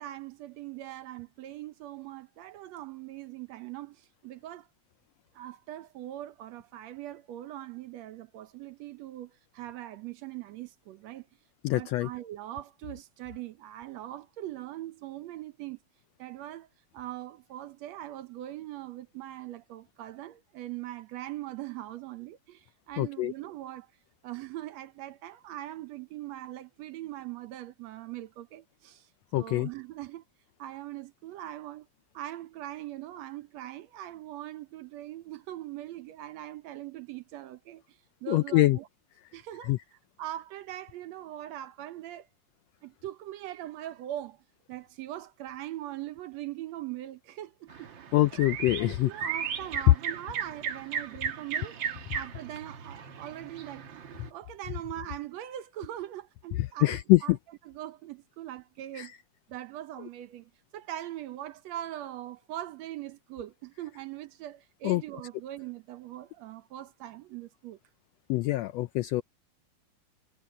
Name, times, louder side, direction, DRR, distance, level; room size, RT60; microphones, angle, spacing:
voice 1, 0.0-4.7 5.4-11.3 11.7-15.8 16.2-16.7 16.9-23.9 24.2-29.1 29.3-30.2 30.6-31.9 32.1-38.9 39.3-42.3 42.8-44.4 44.7-47.9 48.3-48.5 48.8-51.8 52.1-53.9 54.3-57.4 57.7-59.1 59.5-67.8, right 13 dB, 70° right, 1.9 m, -41 dB
voice 2, 11.6-12.1 23.0-23.3 29.3-29.7 38.3-38.8 39.7-39.8 48.1-49.1 56.8-57.4 58.9-59.1 64.8-65.0 68.3-69.2, left 18 dB, 80° left, 1.5 m, -24 dB
sound 1, 47.7-54.3, right 7 dB, 50° right, 1.6 m, -36 dB
omnidirectional pair, 3.4 m